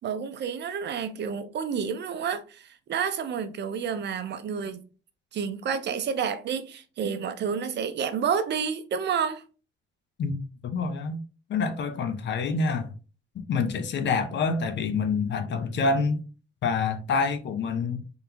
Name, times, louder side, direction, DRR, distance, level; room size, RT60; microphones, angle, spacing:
voice 1, 0.0-4.9 5.3-9.4, right 7 dB, 60° right, 0.7 m, -30 dB
voice 2, 10.2-11.2 11.5-12.9 13.3-16.2 16.6-18.0, left 4 dB, 65° left, 0.9 m, -27 dB
3.9 x 3.6 x 2.8 m
cardioid pair, 90°, 20 cm